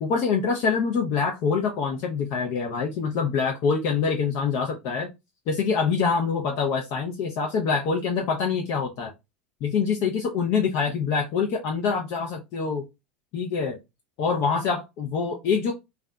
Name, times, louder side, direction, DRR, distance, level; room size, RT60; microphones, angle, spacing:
voice 1, 0.0-5.1 5.5-9.1 9.6-12.8 13.3-13.8 14.2-15.7, left 5 dB, 55° left, 2 dB, 0.5 m, -25 dB
2.6 x 2.2 x 2.2 m, 0.23 s
hypercardioid pair, 80°, 6 cm